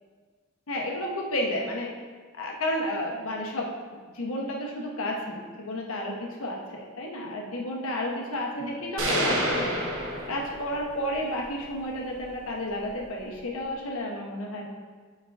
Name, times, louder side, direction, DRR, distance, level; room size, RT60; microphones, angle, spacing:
voice 1, 0.7-1.9 2.3-3.7 4.1-9.7 10.3-14.7, left 1 dB, 75° left, -1 dB, 1.0 m, -32 dB
sound 1, 9.0-10.9, equal, 65° right, 1.1 m, -28 dB
8.2 x 5.4 x 2.6 m, 1.5 s
head